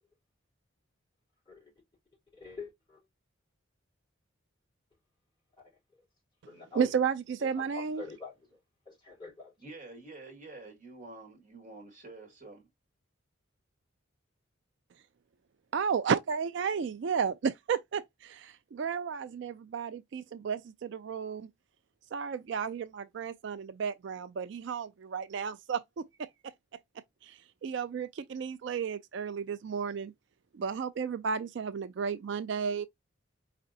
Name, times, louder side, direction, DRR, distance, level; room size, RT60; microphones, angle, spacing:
voice 1, 2.3-3.0 5.6-5.7 6.5-6.9 7.6-8.3 8.8-9.5, left 4 dB, 20° left, 3.2 m, -45 dB
voice 2, 6.7-8.0 15.7-21.5 22.1-26.3 27.2-30.1 30.5-32.9, right 6 dB, 60° right, 0.3 m, -33 dB
voice 3, 9.6-12.7, right 2 dB, 35° right, 1.8 m, -48 dB
5.0 x 3.4 x 2.6 m
head